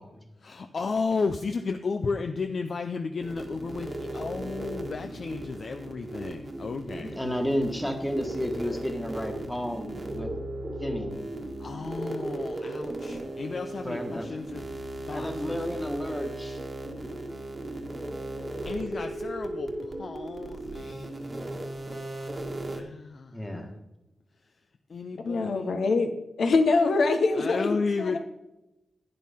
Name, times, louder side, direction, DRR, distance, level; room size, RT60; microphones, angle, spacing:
voice 1, 0.4-7.2 11.6-14.7 15.1-15.8 18.6-22.4 22.7-23.8 24.9-25.8 27.3-28.2, left 4 dB, 50° left, 6 dB, 0.6 m, -34 dB
sound 1, 3.2-22.8, right 1 dB, 30° right, 1.5 m, -36 dB
voice 2, 7.0-10.3 10.8-11.3 13.8-14.3 15.1-16.6 23.3-23.7, equal, 5° left, 3 dB, 1.5 m, -32 dB
voice 3, 25.2-26.1 26.4-28.2, left 3 dB, 75° left, 6 dB, 1.1 m, -24 dB
11.5 x 9.5 x 3.6 m, 0.95 s
wide cardioid pair, 140°, 0 cm